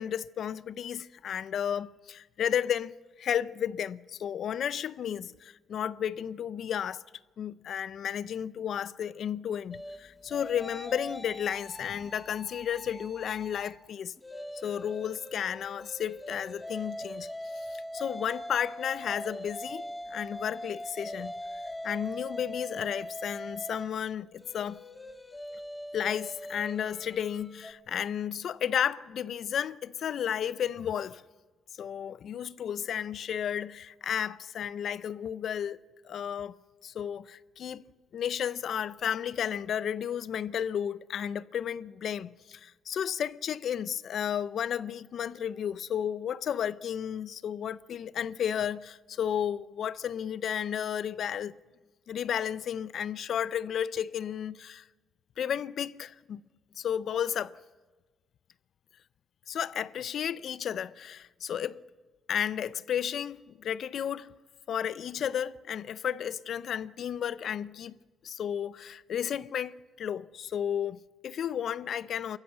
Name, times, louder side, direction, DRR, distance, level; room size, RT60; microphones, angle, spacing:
voice 1, 0.0-7.0 7.4-14.1 14.6-17.3 17.5-21.4 21.8-24.8 25.9-31.2 31.8-36.6 36.8-37.8 38.1-51.5 52.1-54.8 55.4-56.4 56.8-57.5 59.5-61.8 62.3-64.4 64.7-68.0 68.2-72.4, left 9 dB, 65° left, 0.5 m, -33 dB
sound 1, 9.7-13.8 14.2-27.7, equal, 15° left, 1.8 m, -42 dB
23.5 x 14.5 x 7.9 m
cardioid pair, 90°, 0 cm